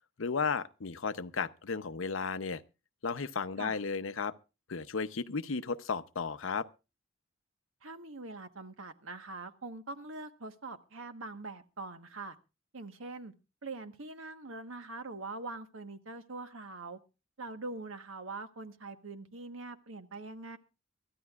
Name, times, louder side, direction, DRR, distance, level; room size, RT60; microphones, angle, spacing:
voice 1, 0.2-2.6 3.0-4.3 4.7-6.7, left 5 dB, 75° left, 0.7 m, -34 dB
voice 2, 7.8-12.4 12.7-13.3 13.6-17.0 17.4-20.6, right 3 dB, 85° right, 1.3 m, -43 dB
23.0 x 13.5 x 2.4 m
head